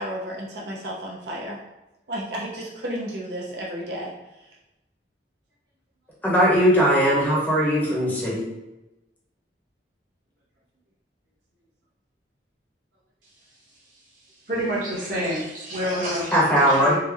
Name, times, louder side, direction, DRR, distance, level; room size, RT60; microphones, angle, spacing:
voice 1, 0.0-1.6 2.1-4.6 16.0-16.2, equal, 65° right, -3 dB, 0.6 m, -33 dB
voice 2, 6.2-8.5 16.3-17.0, equal, 10° left, -6 dB, 0.8 m, -19 dB
voice 3, 14.5-17.0, equal, 50° right, -5 dB, 1.0 m, -28 dB
3.6 x 2.0 x 3.3 m, 0.97 s
head